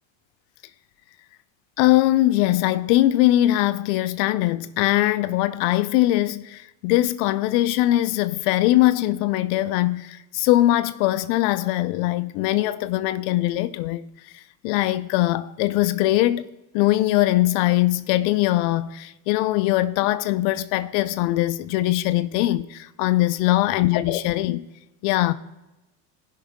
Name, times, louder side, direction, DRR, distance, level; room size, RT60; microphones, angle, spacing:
voice 1, 1.8-14.0 14.3-16.4 16.7-24.7 25.0-25.3, left 16 dB, 70° left, 0.6 m, -21 dB
16.5 x 5.6 x 3.6 m
supercardioid pair, 110°, 50 cm